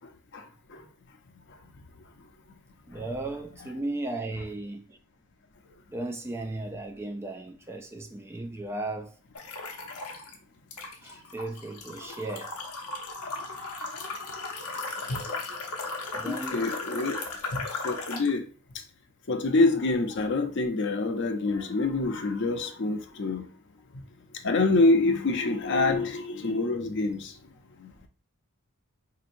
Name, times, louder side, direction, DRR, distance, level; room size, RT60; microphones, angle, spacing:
voice 1, 2.9-5.0 5.9-9.2 11.0-12.6 16.1-16.6, right 2 dB, 10° right, 0.3 m, -36 dB
sound 1, 9.3-10.3 10.7-18.3, left 3 dB, 85° left, 0.9 m, -36 dB
voice 2, 16.2-17.2 17.5-18.4 19.3-23.5 24.4-27.3, left 3 dB, 55° left, 0.6 m, -26 dB
4.4 x 2.8 x 2.6 m
head